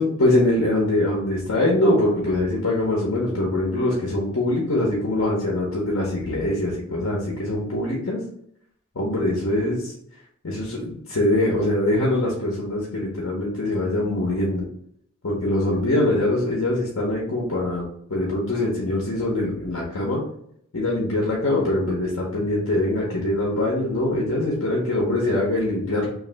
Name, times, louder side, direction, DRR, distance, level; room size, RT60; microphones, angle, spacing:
voice 1, 0.0-8.2 8.9-9.9 10.4-14.6 15.2-17.8 18.1-20.2 20.7-26.1, left 1 dB, 70° left, -3 dB, 0.9 m, -23 dB
3.2 x 2.6 x 3.9 m, 0.70 s
head